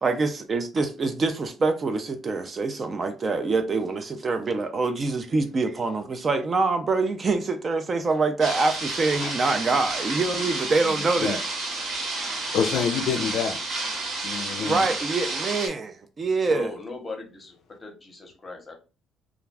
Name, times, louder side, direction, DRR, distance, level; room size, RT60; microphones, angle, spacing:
voice 1, 0.0-11.4 14.6-16.7, right 3 dB, 30° right, 0.3 m, -25 dB
sound 1, 8.4-15.7, right 2 dB, 60° right, 1.0 m, -30 dB
voice 2, 12.5-13.6 14.2-14.8, left 7 dB, 65° left, 0.4 m, -26 dB
voice 3, 16.4-18.8, left 3 dB, 20° left, 0.7 m, -38 dB
2.4 x 2.2 x 3.2 m
cardioid pair, 130°, 0 cm